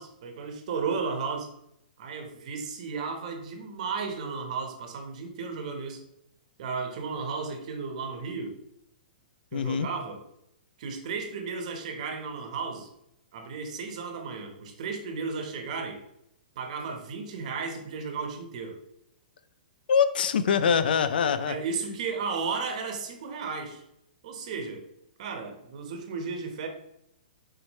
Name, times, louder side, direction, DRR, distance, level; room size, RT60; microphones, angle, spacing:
voice 1, 0.0-1.5 2.0-6.0 6.6-8.6 9.5-10.2 10.8-12.9 13.3-16.0 16.6-18.8 21.4-23.8 24.2-24.8 25.2-26.7, right 5 dB, 50° right, 5 dB, 1.2 m, -34 dB
voice 2, 9.5-9.9 19.9-21.6, left 7 dB, 75° left, 13 dB, 0.5 m, -24 dB
6.4 x 4.6 x 3.1 m, 0.79 s
hypercardioid pair, 165°, 5 cm